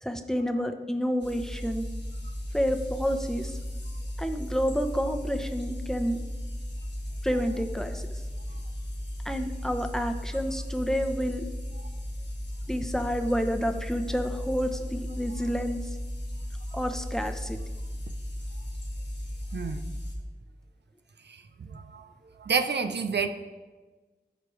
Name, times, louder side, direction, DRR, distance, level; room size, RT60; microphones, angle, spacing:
voice 1, 0.0-1.9 2.5-3.6 4.2-6.2 7.2-8.0 9.2-11.4 12.7-15.8 16.7-17.6, equal, 5° left, 6 dB, 0.8 m, -29 dB
sound 1, 1.2-20.1, equal, 90° left, 1.5 m, -36 dB
voice 2, 21.3-22.1 22.4-23.3, right 5 dB, 70° right, 8 dB, 0.5 m, -30 dB
15.0 x 5.0 x 3.1 m, 1.3 s
wide cardioid pair, 45°, 18 cm